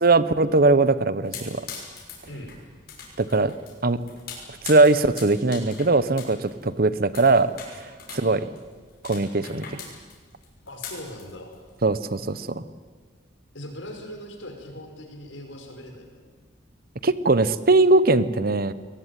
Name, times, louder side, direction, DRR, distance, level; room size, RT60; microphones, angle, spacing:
voice 1, 0.0-1.6 3.2-3.5 3.8-4.0 4.6-7.5 8.1-8.5 9.0-9.8 11.8-12.6 17.0-18.7, right 3 dB, 50° right, 15 dB, 0.9 m, -20 dB
sound 1, 1.2-12.5, left 5 dB, 55° left, 6.2 m, -42 dB
voice 2, 10.7-11.5 13.5-16.2, left 1 dB, 85° left, 3 dB, 5.5 m, -40 dB
22.0 x 20.0 x 9.3 m, 1.5 s
head